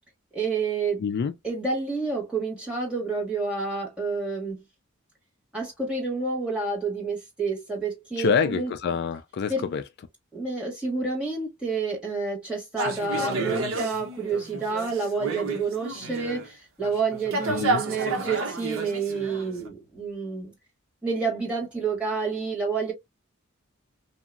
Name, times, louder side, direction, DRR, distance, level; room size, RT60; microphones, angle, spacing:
voice 1, 0.3-1.0 1.4-4.6 5.5-8.7 9.5-9.6 10.3-20.5 21.0-22.9, right 4 dB, 5° right, 1.8 m, -29 dB
voice 2, 1.0-1.3 8.2-9.8 17.5-17.8, left 6 dB, 55° left, 0.3 m, -26 dB
sound 1, 12.8-16.5 16.8-19.7, right 3 dB, 80° right, 0.8 m, -31 dB
2.9 x 2.7 x 2.4 m
head